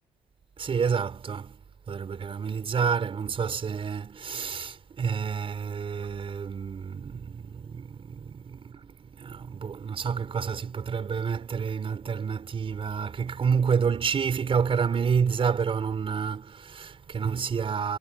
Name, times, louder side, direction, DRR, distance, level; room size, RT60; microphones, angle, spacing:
voice 1, 0.6-1.6 1.9-18.0, right 6 dB, 40° right, 4.7 m, -29 dB
cardioid pair, 100°, 14 cm